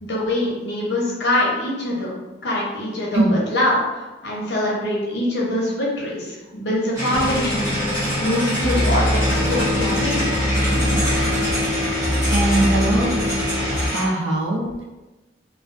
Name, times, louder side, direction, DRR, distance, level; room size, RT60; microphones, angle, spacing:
voice 1, 0.0-2.2 2.4-10.6, left 1 dB, 75° left, -4 dB, 0.7 m, -24 dB
sound 1, 6.9-14.1, equal, 15° right, 0.9 m, -25 dB
sound 2, 7.1-13.9, left 1 dB, ahead, 0.3 m, -24 dB
voice 2, 12.3-13.4 13.9-14.8, right 1 dB, 90° right, -3 dB, 0.6 m, -22 dB
2.2 x 2.2 x 2.5 m, 1.1 s
head